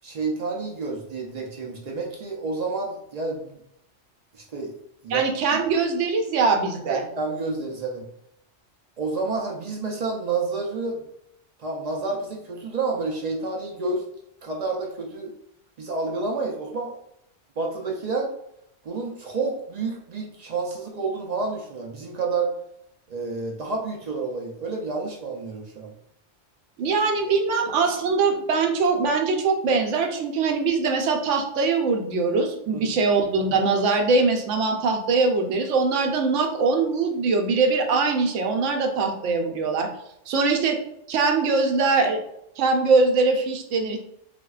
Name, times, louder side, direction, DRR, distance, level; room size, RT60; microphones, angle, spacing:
voice 1, 0.0-3.6 4.3-4.7 5.0-5.3 6.9-8.1 9.0-11.0 11.6-14.0 14.4-15.3 15.8-17.0 17.6-18.3 18.8-22.5 23.1-25.9 32.7-33.1, right 3 dB, 60° right, -1 dB, 0.4 m, -29 dB
voice 2, 5.1-7.0 26.8-39.9 40.3-40.8 41.1-42.2 42.6-44.0, right 4 dB, 85° right, 4 dB, 0.9 m, -22 dB
4.0 x 2.1 x 2.3 m, 0.76 s
omnidirectional pair, 1.2 m